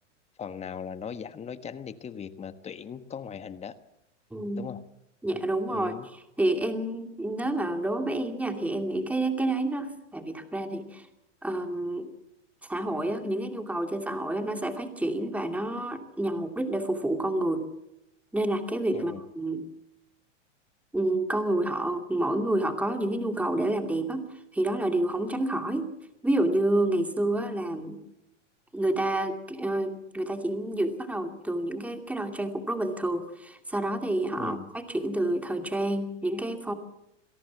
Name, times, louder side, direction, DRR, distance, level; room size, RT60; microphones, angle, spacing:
voice 1, 0.4-3.7 4.6-4.8 5.7-6.1 18.9-19.2 34.4-34.7, left 7 dB, 15° left, 11 dB, 1.3 m, -38 dB
voice 2, 4.3-4.7 5.2-5.9 6.4-11.1 11.4-12.1 12.6-17.7 18.3-19.6 20.9-25.9 26.2-28.0 28.7-36.7, right 1 dB, 5° right, 6 dB, 2.5 m, -29 dB
27.0 x 17.5 x 7.2 m, 0.85 s
hypercardioid pair, 130°, 37 cm